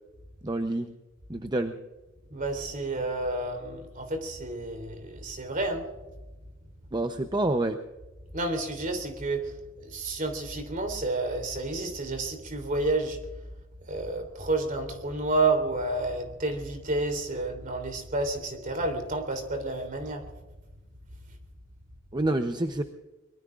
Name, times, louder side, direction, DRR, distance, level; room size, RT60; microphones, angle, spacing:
voice 1, 0.4-0.9 1.3-1.7 6.9-7.8 22.1-22.8, right 2 dB, 20° right, 7 dB, 0.7 m, -27 dB
voice 2, 2.3-5.9 8.3-13.2 13.8-20.3 21.3-21.4, right 2 dB, 45° right, 6 dB, 3.3 m, -30 dB
24.5 x 22.5 x 2.5 m, 1.1 s
head